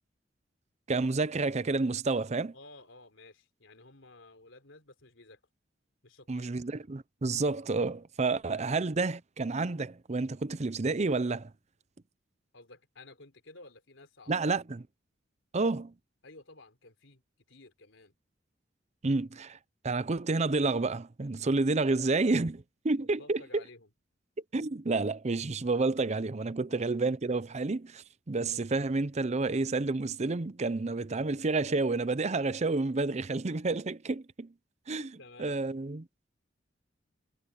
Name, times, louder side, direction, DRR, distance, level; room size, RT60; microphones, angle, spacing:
voice 1, 0.9-2.5 6.3-11.5 14.3-14.8 15.5-15.9 19.0-19.6 19.8-23.6 24.5-34.5 34.9-35.1 35.4-36.1, right 3 dB, 35° right, 0.6 m, -30 dB
voice 2, 2.5-5.4 6.0-6.5 8.5-8.6 12.5-14.4 16.2-17.2 17.5-18.2 23.2-23.9 26.7-26.9 35.0-35.6, left 2 dB, 80° left, 4.0 m, -53 dB
head